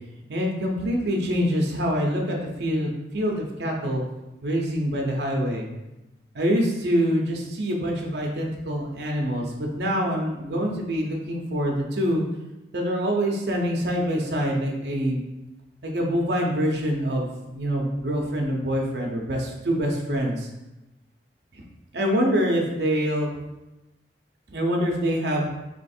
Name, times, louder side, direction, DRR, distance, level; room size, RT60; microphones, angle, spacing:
voice 1, 0.3-4.0 4.4-5.7 6.3-12.2 12.7-15.2 15.8-20.5 21.5-21.6 21.9-23.3 24.5-25.5, equal, 65° right, 0 dB, 0.7 m, -25 dB
3.2 x 3.0 x 4.3 m, 0.99 s
head